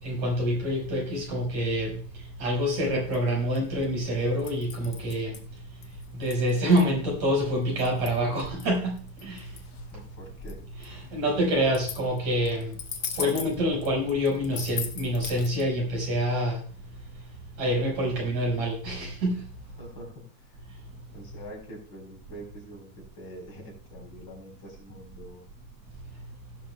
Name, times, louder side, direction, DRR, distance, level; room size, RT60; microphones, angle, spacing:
voice 1, 0.0-2.0 2.4-5.4 6.1-9.5 10.8-12.7 13.2-16.6 17.6-19.4, equal, 60° right, -1 dB, 6.4 m, -26 dB
sound 1, 3.1-15.6, left 7 dB, 60° left, 1.9 m, -40 dB
voice 2, 9.9-10.6 11.0-11.2 19.8-20.2 21.1-25.5, equal, 35° left, -1 dB, 5.0 m, -45 dB
17.0 x 11.5 x 2.3 m, 0.41 s
omnidirectional pair, 3.6 m